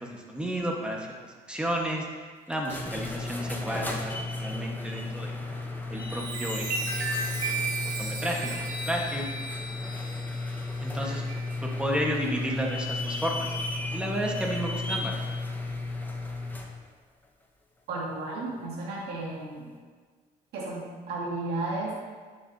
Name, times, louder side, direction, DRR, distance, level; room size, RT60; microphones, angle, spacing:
voice 1, 0.0-5.4 5.9-7.6 7.8-9.3 10.8-11.2 11.6-13.5 13.9-15.1, equal, 5° right, -1 dB, 1.4 m, -32 dB
sound 1, 2.5-16.8, left 2 dB, 10° left, 0.8 m, -34 dB
Chime, 5.8-11.8 12.4-12.7, right 3 dB, 50° right, 1.4 m, -35 dB
voice 2, 17.9-19.7 20.5-21.9, right 2 dB, 75° right, -5 dB, 2.1 m, -33 dB
10.0 x 7.0 x 2.8 m, 1.5 s
cardioid pair, 110°, 17 cm